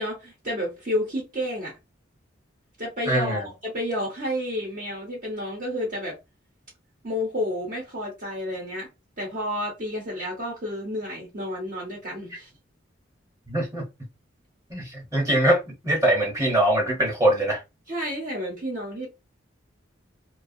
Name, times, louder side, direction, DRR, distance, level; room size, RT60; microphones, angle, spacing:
voice 1, 0.0-1.7 2.8-6.2 7.0-8.9 9.2-12.5 17.9-19.1, left 1 dB, 45° right, 0.8 m, -30 dB
voice 2, 3.1-3.4 13.5-13.8 14.7-17.6, right 1 dB, 15° right, 0.9 m, -22 dB
2.4 x 2.2 x 2.6 m
head